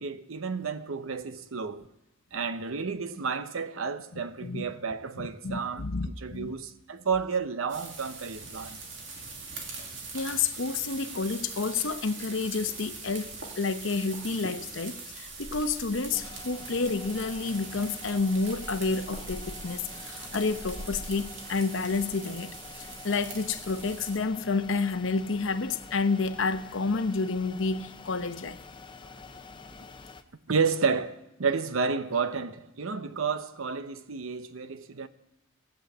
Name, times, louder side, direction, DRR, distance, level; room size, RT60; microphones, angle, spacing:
voice 1, 0.0-1.8 2.3-8.8 30.5-35.1, right 5 dB, 85° right, 0.8 m, -31 dB
voice 2, 4.1-4.6 5.2-6.5 10.1-28.6, left 4 dB, 70° left, 0.8 m, -30 dB
sound 1, 7.7-24.2, right 3 dB, 65° right, 2.5 m, -42 dB
sound 2, 16.1-30.2, left 4 dB, 25° left, 0.6 m, -47 dB
15.5 x 8.1 x 7.9 m
head